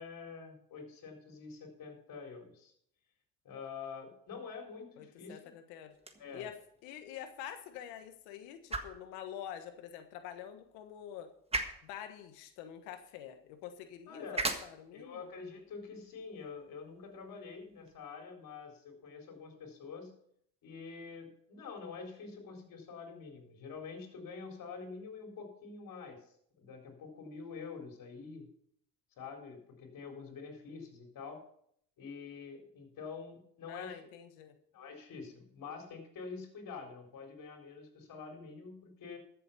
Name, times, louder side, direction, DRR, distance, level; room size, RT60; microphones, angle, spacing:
voice 1, 0.0-2.7 3.4-5.4 6.2-6.5 14.1-14.5 14.9-20.1 20.6-28.5 29.2-31.4 32.0-34.0 34.7-39.2, left 5 dB, 60° left, 2 dB, 4.2 m, -46 dB
voice 2, 5.0-5.9 6.3-6.6 6.8-11.3 11.8-15.3 33.7-34.6, left 10 dB, 85° left, 8 dB, 1.4 m, -46 dB
sound 1, 5.9-18.0, right 2 dB, 15° right, 1.5 m, -44 dB
13.5 x 7.7 x 5.7 m, 0.67 s
supercardioid pair, 85°, 38 cm